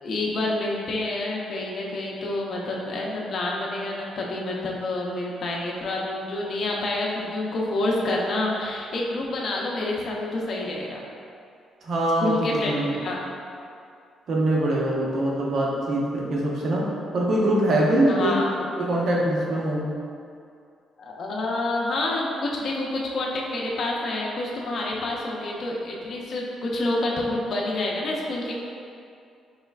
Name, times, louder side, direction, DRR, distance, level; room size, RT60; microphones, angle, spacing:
voice 1, 0.0-11.0 12.2-13.2 18.1-18.5 21.0-28.5, left 2 dB, 55° left, -3 dB, 0.6 m, -28 dB
voice 2, 11.8-12.9 14.3-16.9 17.1-18.4 18.8-19.9, right 1 dB, 60° right, -3 dB, 0.8 m, -23 dB
4.8 x 3.1 x 2.4 m, 2.4 s
cardioid pair, 90°, 0 cm